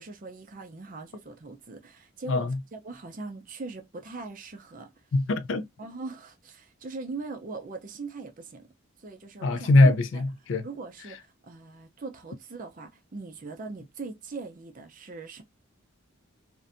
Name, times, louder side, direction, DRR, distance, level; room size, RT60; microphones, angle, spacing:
voice 1, 0.0-4.9 5.8-8.7 9.0-10.3 10.6-15.4, right 3 dB, 40° right, 0.5 m, -41 dB
voice 2, 5.1-5.7 9.4-10.7, left 2 dB, 60° left, 0.3 m, -22 dB
2.5 x 2.2 x 2.4 m
head